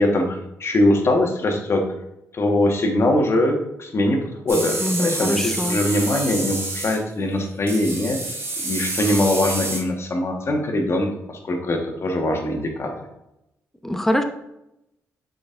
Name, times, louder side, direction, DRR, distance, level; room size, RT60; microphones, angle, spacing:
voice 1, 0.0-1.8 2.3-8.2 8.6-12.9, left 1 dB, 45° left, 2 dB, 1.5 m, -22 dB
sound 1, 4.5-7.0 7.7-9.8, right 2 dB, 45° right, 2.2 m, -28 dB
voice 2, 4.8-5.8 13.8-14.2, equal, 5° left, 6 dB, 0.8 m, -23 dB
6.8 x 5.4 x 2.6 m, 0.86 s
supercardioid pair, 65°, 6 cm